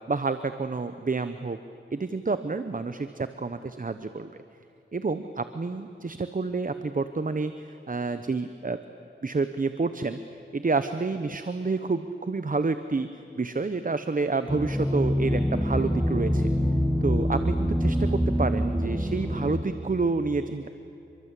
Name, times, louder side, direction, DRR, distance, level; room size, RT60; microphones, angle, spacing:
voice 1, 0.1-1.6 1.9-4.3 4.9-7.5 7.9-8.8 9.2-10.2 10.5-13.1 13.4-16.5 17.0-20.7, right 3 dB, 45° right, 10 dB, 1.0 m, -29 dB
sound 1, 14.5-19.6, equal, 5° right, 2.0 m, -25 dB
30.0 x 23.5 x 8.5 m, 2.8 s
wide cardioid pair, 75°, 20 cm